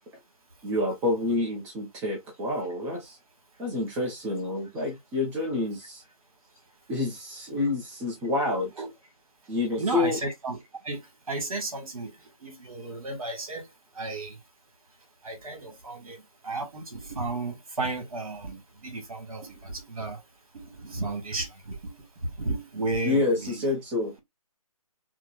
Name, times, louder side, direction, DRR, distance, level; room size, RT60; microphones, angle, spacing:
voice 1, 0.6-3.2 3.6-6.0 6.9-8.7 9.5-10.2 23.0-24.1, left 2 dB, 10° right, 0.6 m, -28 dB
voice 2, 9.7-12.1 12.4-13.7 13.9-14.4 15.2-20.2 20.5-21.9 22.2-23.7, right 2 dB, 70° right, 1.7 m, -33 dB
4.5 x 2.1 x 2.3 m
figure-of-eight pair, 155°, 19 cm